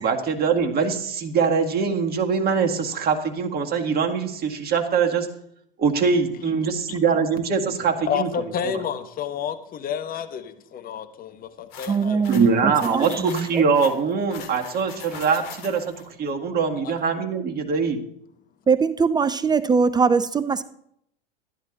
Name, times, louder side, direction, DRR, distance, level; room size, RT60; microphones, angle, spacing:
voice 1, 0.0-5.3 5.8-8.3 12.3-18.0, right 5 dB, 30° right, 3 dB, 1.9 m, -23 dB
voice 2, 6.6-7.0 8.1-12.4 16.8-16.9, left 8 dB, 30° left, 9 dB, 1.2 m, -30 dB
sound 1, 11.7-16.0, left 7 dB, 55° left, 2.6 m, -41 dB
voice 3, 11.9-13.6 18.7-20.6, right 5 dB, 15° right, 15 dB, 0.4 m, -22 dB
14.0 x 10.5 x 4.0 m, 0.71 s
hypercardioid pair, 90°, 29 cm